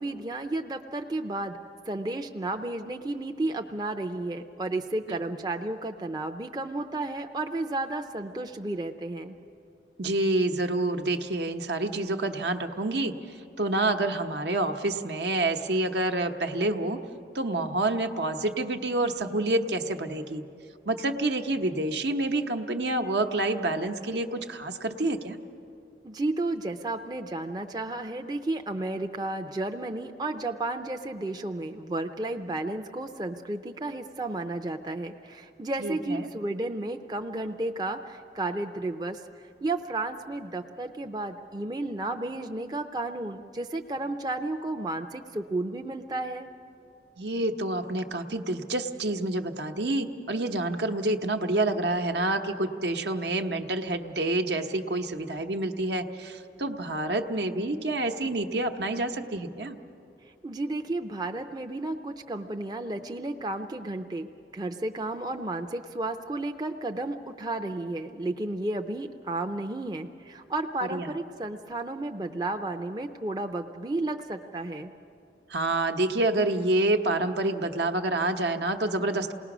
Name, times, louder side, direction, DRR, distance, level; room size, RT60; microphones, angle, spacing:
voice 1, 0.0-1.6 1.9-9.4 26.0-39.2 39.6-46.5 60.4-64.3 64.5-74.9, right 2 dB, 25° right, 4 dB, 0.5 m, -32 dB
voice 2, 10.0-13.1 13.6-17.0 17.3-20.4 20.9-25.4 35.8-36.3 47.2-59.8 70.8-71.1 75.5-79.3, right 2 dB, 75° right, 6 dB, 1.0 m, -28 dB
28.0 x 19.0 x 6.1 m, 2.6 s
head